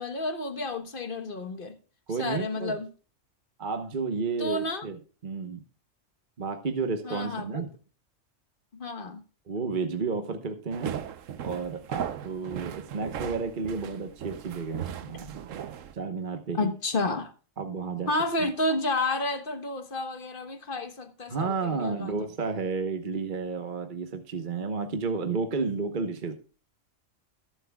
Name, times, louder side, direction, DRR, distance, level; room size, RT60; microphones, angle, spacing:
voice 1, 0.0-1.7 2.2-2.9 4.4-4.9 7.0-7.6 8.7-9.2 16.6-17.3 18.1-22.1, left 2 dB, 45° left, 1.3 m, -30 dB
voice 2, 2.1-2.8 3.6-5.6 6.4-7.7 9.5-11.0 11.4-15.4 15.9-16.7 17.6-18.1 18.4-18.5 21.3-26.3, right 4 dB, 40° right, 1.1 m, -32 dB
sound 1, 10.7-15.9, right 9 dB, 80° right, 1.1 m, -37 dB
22.0 x 7.8 x 2.3 m
omnidirectional pair, 1.3 m